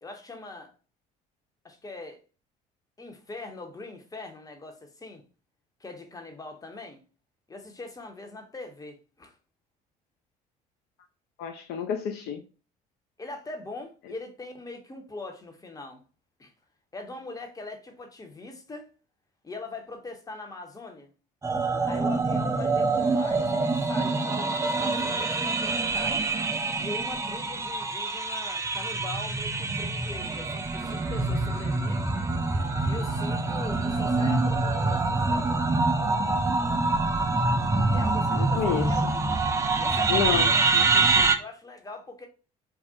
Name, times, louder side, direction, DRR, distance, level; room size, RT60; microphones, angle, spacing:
voice 1, 0.0-0.7 1.6-2.2 3.0-5.2 5.8-7.0 7.5-9.3 13.2-16.0 16.4-16.5 16.9-18.9 19.4-21.1 21.9-26.3 26.8-32.1 32.8-35.5 37.9-39.1 39.8-40.6 41.4-42.3, left 2 dB, 20° left, 0.7 m, -41 dB
voice 2, 11.4-12.4 38.3-38.9 40.1-41.3, left 8 dB, 60° left, 0.4 m, -30 dB
sound 1, 21.4-41.3, right 3 dB, 15° right, 0.4 m, -25 dB
2.3 x 2.0 x 2.6 m
hypercardioid pair, 55°, 20 cm